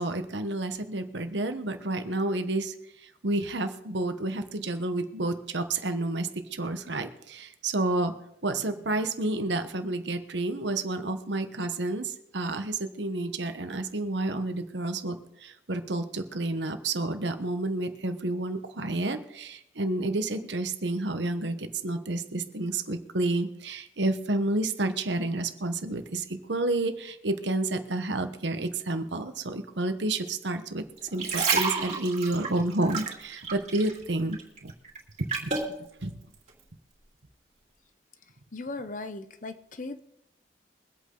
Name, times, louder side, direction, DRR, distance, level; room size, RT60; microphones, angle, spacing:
voice 1, 0.0-2.7 3.0-8.1 8.4-30.8 31.1-34.7 35.4-35.5 36.0-36.2, right 2 dB, 85° right, 8 dB, 1.2 m, -30 dB
sound 1, 31.0-34.0 34.3-35.7 36.3-36.5, right 4 dB, 40° right, 3.2 m, -30 dB
voice 2, 38.5-40.0, left 2 dB, 45° left, 10 dB, 0.8 m, -37 dB
23.0 x 8.4 x 3.9 m, 0.80 s
head